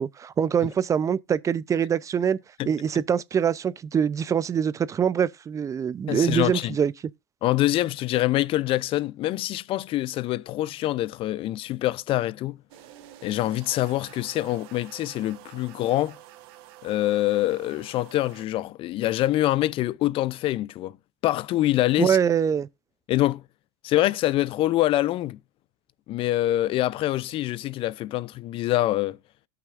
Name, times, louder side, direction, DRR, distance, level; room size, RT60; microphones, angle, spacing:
voice 1, 0.0-2.4 2.7-6.9 22.0-22.7, right 8 dB, 25° right, 0.6 m, -24 dB
voice 2, 6.1-6.7 7.4-12.6 13.2-16.2 16.8-21.0 21.2-22.2 23.1-23.4 23.8-25.4 26.1-29.2, left 15 dB, 45° left, 0.5 m, -25 dB
sound 1, 12.7-18.5, right 13 dB, 70° right, 1.3 m, -48 dB
17.5 x 5.9 x 2.5 m
supercardioid pair, 110°, 13 cm